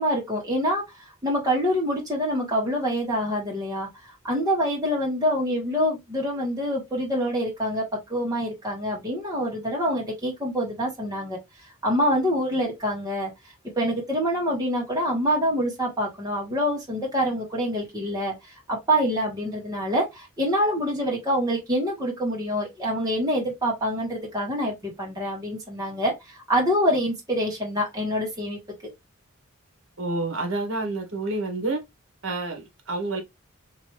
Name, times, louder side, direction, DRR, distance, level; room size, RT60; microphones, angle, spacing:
voice 1, 0.0-3.9 4.2-7.8 8.1-11.4 11.8-13.3 13.7-28.6, equal, 15° right, 1.5 m, -26 dB
voice 2, 30.0-31.8 32.2-33.2, right 2 dB, 65° right, 1.2 m, -28 dB
3.0 x 2.9 x 3.2 m
head